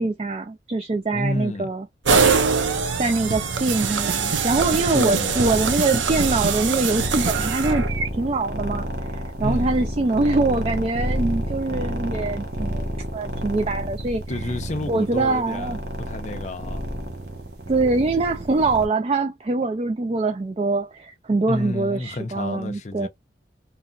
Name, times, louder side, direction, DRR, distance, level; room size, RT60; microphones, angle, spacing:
voice 1, 0.0-1.9 3.0-7.8 8.1-8.9 9.1-14.4 14.9-15.8 17.7-23.1, right 3 dB, 30° right, 0.3 m, -24 dB
voice 2, 1.1-1.7 4.9-5.4 9.4-9.7 14.3-16.8 21.5-23.1, left 2 dB, 40° left, 0.5 m, -30 dB
sound 1, 2.1-8.1, right 5 dB, 90° right, 0.6 m, -23 dB
sound 2, 4.3-18.9, equal, 55° right, 0.8 m, -30 dB
2.9 x 2.6 x 2.3 m
head